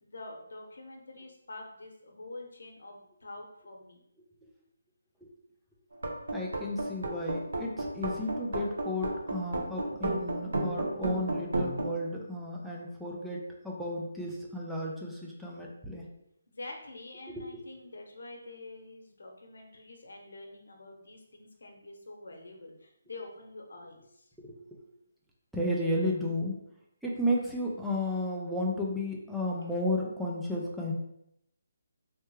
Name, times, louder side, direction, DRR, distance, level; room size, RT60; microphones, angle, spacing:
voice 1, 0.0-4.0 16.5-24.3, left 2 dB, 85° left, 2 dB, 0.7 m, -46 dB
sound 1, 5.9-11.9, right 1 dB, 80° right, 0.7 m, -32 dB
voice 2, 6.3-16.1 17.3-17.6 24.4-24.8 25.5-26.6 27.0-30.9, left 1 dB, ahead, -4 dB, 0.3 m, -33 dB
3.3 x 2.2 x 3.1 m, 0.76 s
hypercardioid pair, 175°, 0 cm